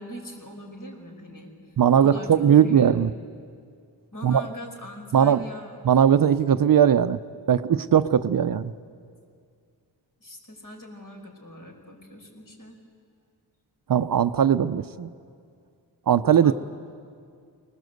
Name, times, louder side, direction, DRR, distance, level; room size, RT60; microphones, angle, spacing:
voice 1, 0.0-3.1 4.1-5.8 10.2-12.8 16.4-16.5, left 1 dB, 45° left, 2 dB, 5.5 m, -42 dB
voice 2, 1.8-3.1 4.2-4.4 5.1-5.5 5.8-7.2 7.5-8.7 13.9-15.1 16.1-16.5, right 8 dB, 50° right, 12 dB, 0.7 m, -19 dB
24.0 x 19.5 x 8.0 m, 2.2 s
cardioid pair, 75°, 45 cm